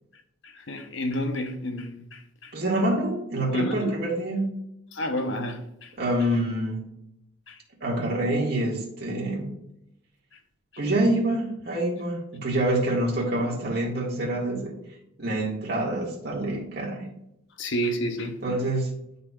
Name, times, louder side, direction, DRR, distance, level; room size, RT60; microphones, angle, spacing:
voice 1, 0.4-2.5 3.5-3.9 4.9-5.9 7.5-7.6 10.3-10.4 17.6-18.4, equal, 65° left, 0.8 m, -30 dB
voice 2, 2.5-4.6 6.0-6.9 7.8-9.6 10.8-14.7 15.2-17.1 18.4-18.9, right 1 dB, 50° right, 1.9 m, -26 dB
11.5 x 4.1 x 2.4 m
head